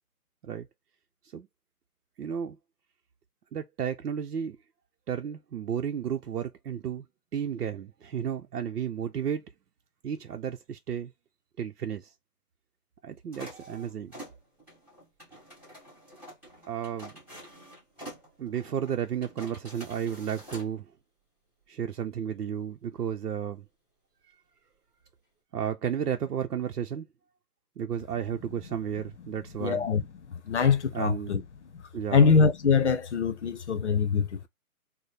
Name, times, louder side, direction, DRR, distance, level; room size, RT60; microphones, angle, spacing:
voice 1, 2.2-2.6 3.5-4.6 5.1-7.1 7.3-9.4 10.0-11.1 11.6-12.1 13.0-14.1 16.7-17.1 18.4-20.9 21.7-23.6 25.5-27.1 27.8-29.9 30.9-31.4 31.9-32.4, right 8 dB, 85° right, 0.7 m, -33 dB
sound 1, 13.3-20.7, equal, 5° right, 1.5 m, -47 dB
voice 2, 29.6-30.0 30.3-31.4 31.7-31.8 32.1-34.5, left 5 dB, 50° left, 0.7 m, -23 dB
4.1 x 2.2 x 3.2 m
hypercardioid pair, 165°, 46 cm